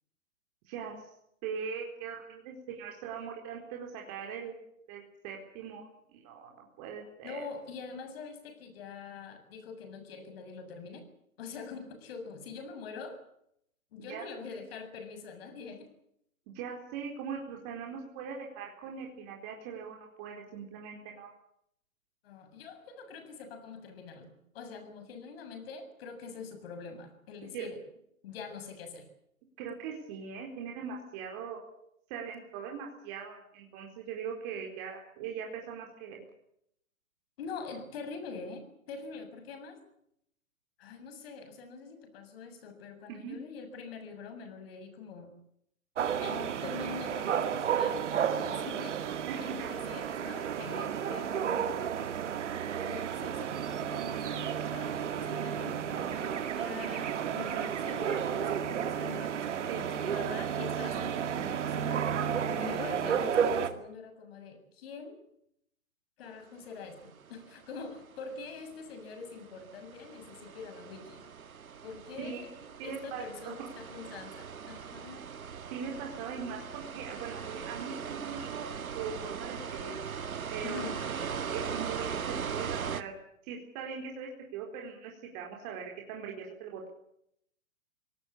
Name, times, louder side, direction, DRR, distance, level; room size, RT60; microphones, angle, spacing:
voice 1, 0.6-1.1 1.4-4.6 4.9-5.9 6.1-7.5 14.1-14.3 16.5-21.3 27.5-27.7 29.6-31.6 32.1-36.2 43.1-43.4 49.3-49.7 59.7-60.1 62.5-62.8 72.2-72.5 72.8-73.7 75.7-79.9 80.5-80.8 81.1-83.1 83.4-86.9, right 6 dB, 30° right, 0 dB, 4.4 m, -41 dB
voice 2, 7.2-11.0 11.4-13.2 13.9-15.9 22.2-27.8 28.2-29.1 37.4-39.8 40.8-45.3 46.2-49.0 49.4-51.8 52.8-62.0 62.3-65.2 66.2-71.2 71.8-72.5 72.8-75.3 80.6-81.0, left 5 dB, 45° left, 8 dB, 7.3 m, -44 dB
sound 1, 46.0-63.7, right 8 dB, 60° right, 2.6 m, -32 dB
sound 2, 66.9-83.0, right 7 dB, 85° right, 2.0 m, -39 dB
24.0 x 18.5 x 8.6 m, 0.74 s
hypercardioid pair, 145°, 41 cm